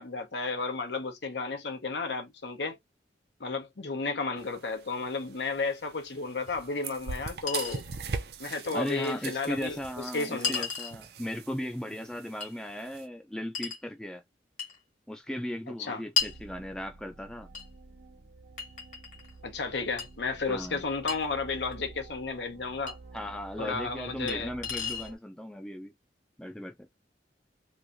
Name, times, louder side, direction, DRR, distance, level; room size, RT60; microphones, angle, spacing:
voice 1, 0.0-2.8 3.4-7.8 8.4-10.7 15.8-16.0 19.4-23.0 23.6-24.5, left 4 dB, 75° left, 0.9 m, -33 dB
sound 1, 4.4-13.1, right 5 dB, 60° right, 0.5 m, -42 dB
Chink clink, 6.5-6.6 7.5-7.8 9.0-9.1 10.4-11.0 12.4-12.5 13.5-13.8 14.6-14.8 16.2-16.4 17.5-17.7 18.6-19.3 20.0-20.1 21.1-21.2 22.9-23.0 24.3-24.4 24.6-25.1, left 6 dB, 45° left, 1.3 m, -32 dB
voice 2, 8.7-14.2 15.1-17.5 20.5-20.8 23.1-25.9 26.4-26.7, equal, 5° left, 0.4 m, -37 dB
sound 2, 16.2-25.2, right 3 dB, 80° right, 1.2 m, -50 dB
3.1 x 2.6 x 2.6 m
head